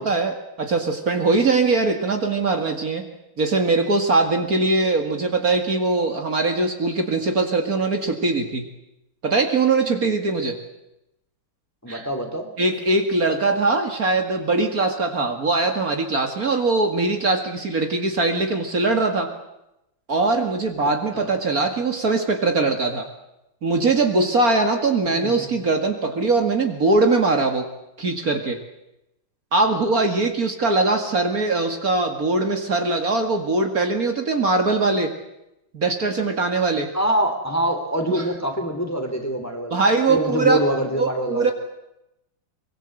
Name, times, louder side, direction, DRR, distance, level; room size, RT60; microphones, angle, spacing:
voice 1, 0.0-3.1 3.4-8.6 9.2-10.6 11.9-12.1 12.6-19.3 20.1-23.1 23.6-27.7 28.0-28.6 29.5-35.1 35.7-36.9 38.1-38.2 39.7-40.6 41.0-41.5, right 3 dB, 50° right, 4 dB, 2.5 m, -21 dB
voice 2, 11.8-12.5 21.1-21.3 25.1-25.5 36.9-39.7 40.1-41.5, right 1 dB, 10° left, 5 dB, 3.1 m, -25 dB
23.5 x 23.5 x 7.9 m, 0.87 s
omnidirectional pair, 2.1 m